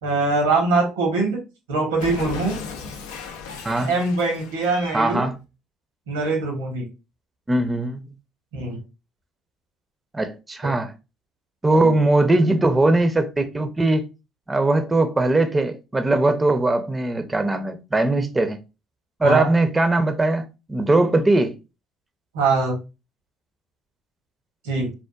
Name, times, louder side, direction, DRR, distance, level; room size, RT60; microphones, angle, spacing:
voice 1, 0.0-1.4 1.7-2.6 3.9-5.2 6.1-6.9 8.5-8.8 11.7-12.0 19.2-19.5 22.3-22.8 24.6-24.9, right 3 dB, 85° right, 1.0 m, -22 dB
Cat, 2.0-5.3, left 5 dB, 80° left, 0.4 m, -36 dB
voice 2, 4.9-5.3 7.5-8.0 10.1-10.9 11.6-14.1 14.5-18.6 19.2-21.6, right 2 dB, 20° right, 0.5 m, -20 dB
3.4 x 2.4 x 2.3 m
hypercardioid pair, 60°, 0 cm